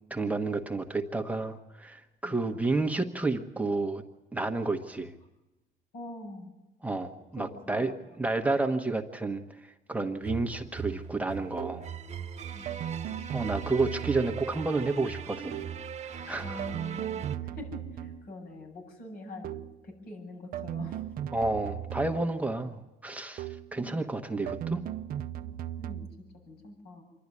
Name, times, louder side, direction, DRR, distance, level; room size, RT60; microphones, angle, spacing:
voice 1, 0.1-4.0 4.3-5.1 6.8-11.9 13.3-15.7 16.0-16.7 21.3-24.8, right 3 dB, 10° right, 4 dB, 1.2 m, -31 dB
voice 2, 5.9-6.6 7.4-8.2 12.5-12.9 16.4-21.0 23.8-24.1 25.8-26.1 26.5-27.0, left 1 dB, 70° left, 2 dB, 7.7 m, -44 dB
sound 1, 10.2-17.4, right 7 dB, 40° right, 1.4 m, -39 dB
sound 2, 11.6-12.0 12.7-14.5 15.5-15.9 16.6-18.3 19.4-19.9 20.5-22.5 23.4-23.8 24.5-26.3, right 11 dB, 60° right, 0.7 m, -37 dB
26.0 x 12.0 x 9.8 m, 1.0 s
cardioid pair, 110°, 17 cm